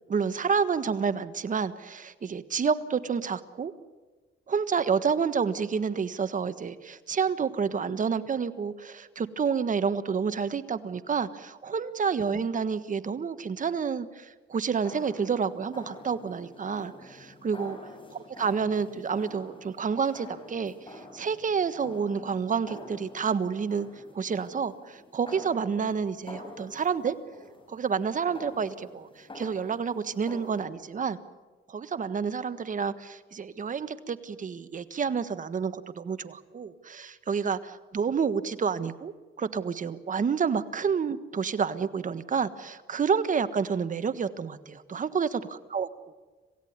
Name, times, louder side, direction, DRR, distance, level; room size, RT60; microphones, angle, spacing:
voice 1, 0.1-3.7 4.5-17.8 18.1-23.9 24.1-27.1 27.7-31.2 31.7-45.9, right 6 dB, 40° right, 12 dB, 1.4 m, -29 dB
sound 1, 14.5-30.7, left 1 dB, 25° left, 5.7 m, -47 dB
27.0 x 16.5 x 9.5 m, 1.3 s
cardioid pair, 90°, 20 cm